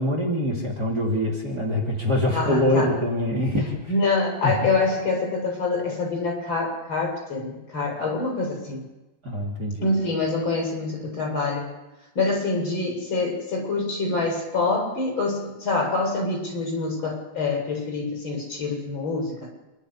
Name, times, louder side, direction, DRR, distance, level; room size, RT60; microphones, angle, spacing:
voice 1, 0.0-3.9 4.4-4.5 9.2-9.9, left 1 dB, 35° right, -1 dB, 3.6 m, -24 dB
voice 2, 2.3-3.0 3.9-8.8 9.8-11.7 12.2-19.5, left 3 dB, 40° left, 0 dB, 8.7 m, -26 dB
28.0 x 12.5 x 8.5 m, 1.0 s
omnidirectional pair, 3.3 m